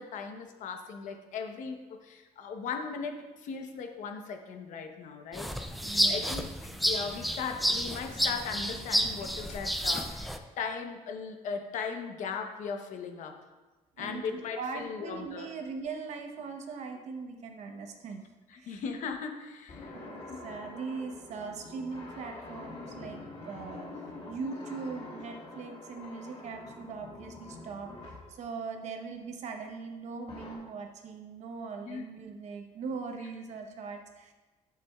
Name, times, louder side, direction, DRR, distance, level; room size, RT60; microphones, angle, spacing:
voice 1, 0.0-5.5 6.1-6.5 6.8-13.3 14.0-15.5 18.7-19.9 20.3-20.4 31.9-32.0, left 5 dB, 70° left, 4 dB, 0.9 m, -38 dB
sound 1, 5.3-10.4, equal, ahead, 0.4 m, -30 dB
voice 2, 5.8-6.3 14.0-18.2 18.5-18.8 19.9-24.0 24.3-27.9 28.3-34.3, right 4 dB, 60° right, 4 dB, 0.9 m, -40 dB
sound 2, 19.7-28.3 30.3-30.6, left 2 dB, 45° left, 1.7 m, -45 dB
11.0 x 6.7 x 2.3 m, 1.2 s
cardioid pair, 150°, 13 cm